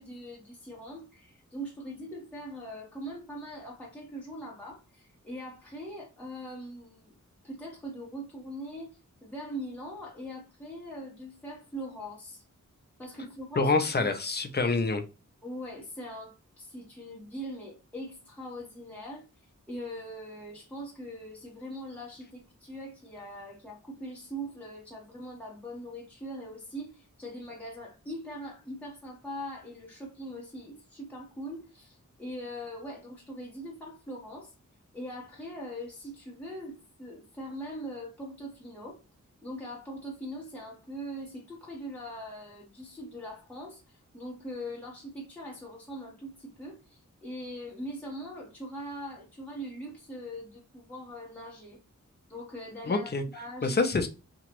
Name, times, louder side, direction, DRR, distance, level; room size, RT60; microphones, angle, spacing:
voice 1, 0.0-7.1 7.4-8.9 9.2-12.4 13.0-13.7 14.0-14.1 15.4-19.2 19.7-34.5 34.9-39.0 39.4-51.8 52.3-53.8, equal, 5° left, 1.0 m, -41 dB
voice 2, 13.6-15.0 52.9-53.2 53.6-54.1, left 3 dB, 35° left, 0.5 m, -26 dB
2.9 x 2.3 x 2.9 m
wide cardioid pair, 120°, 31 cm